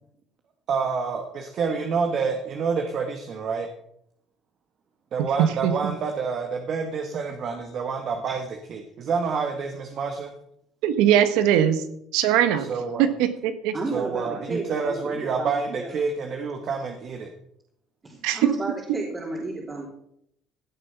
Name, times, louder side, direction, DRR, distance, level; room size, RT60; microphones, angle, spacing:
voice 1, 0.7-3.7 5.1-8.4 8.7-10.3 12.7-13.1 13.9-17.3, right 5 dB, 50° right, 4 dB, 1.7 m, -28 dB
voice 2, 5.4-5.9 10.8-11.8 12.1-12.7 13.0-13.7 18.2-18.5, right 10 dB, 85° right, 10 dB, 1.4 m, -21 dB
voice 3, 13.7-15.9 18.0-19.9, right 2 dB, 25° right, -3 dB, 3.6 m, -33 dB
17.0 x 8.2 x 6.0 m, 0.75 s
cardioid pair, 105°, 0 cm